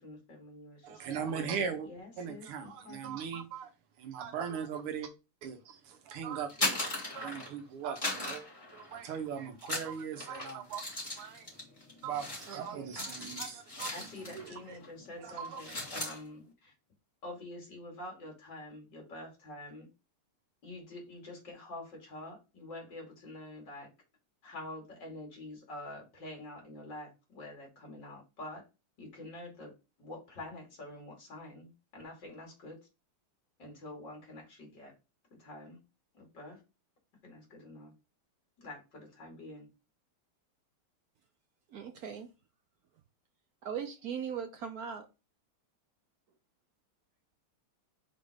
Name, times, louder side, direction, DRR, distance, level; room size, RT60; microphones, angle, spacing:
voice 1, 0.0-3.4 12.9-13.3 13.9-16.7 17.2-19.9 20.6-23.9 24.4-28.6 29.0-29.7 30.0-32.8 33.6-34.9 35.4-35.8 36.1-36.6 37.2-37.9 38.6-39.7, left 1 dB, 55° left, 3.3 m, -47 dB
voice 2, 0.8-1.9 2.2-3.7 4.0-5.1 5.4-8.4 8.7-11.5 12.0-14.1 14.3-14.8 15.2-15.7, right 7 dB, 90° right, 1.9 m, -39 dB
sound 1, 6.4-7.6 8.0-9.2 9.6-14.5 14.8-15.1 15.4-16.2, left 2 dB, 15° left, 3.0 m, -38 dB
voice 3, 12.4-12.9 41.7-42.3 43.6-45.1, right 7 dB, 70° right, 0.9 m, -39 dB
5.7 x 4.2 x 5.0 m
omnidirectional pair, 2.4 m